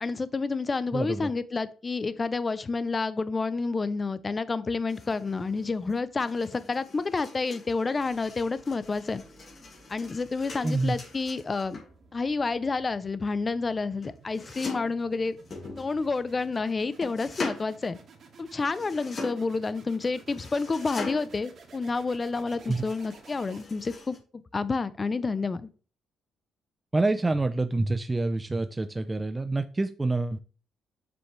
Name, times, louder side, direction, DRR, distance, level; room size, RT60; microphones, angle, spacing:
voice 1, 0.0-9.2 9.9-11.8 12.1-15.4 15.8-18.0 18.4-25.7, left 4 dB, 30° left, 15 dB, 0.6 m, -29 dB
voice 2, 0.9-1.3 10.6-10.9 22.7-22.8 26.9-30.4, right 2 dB, 20° right, 10 dB, 0.4 m, -27 dB
sound 1, 4.9-11.9 14.0-15.0 15.5-16.4 17.0-17.7 18.6-19.5 20.3-21.4 22.5-24.2, left 3 dB, 50° left, 2.9 m, -42 dB
sound 2, 7.9-24.0, right 4 dB, 55° right, 2.1 m, -54 dB
7.0 x 6.5 x 3.2 m, 0.37 s
cardioid pair, 90°, 0 cm